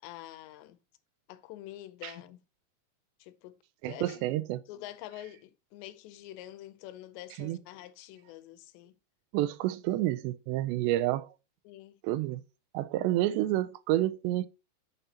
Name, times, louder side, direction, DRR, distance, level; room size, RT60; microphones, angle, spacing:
voice 1, 0.0-0.8 1.3-2.4 3.2-4.3 4.7-8.9 11.7-12.0, left 14 dB, 85° left, 2.9 m, -46 dB
voice 2, 3.8-4.6 7.4-7.6 9.3-11.3 12.0-12.4 12.7-14.5, right 15 dB, 85° right, 2.8 m, -29 dB
10.0 x 7.0 x 2.9 m
omnidirectional pair, 5.0 m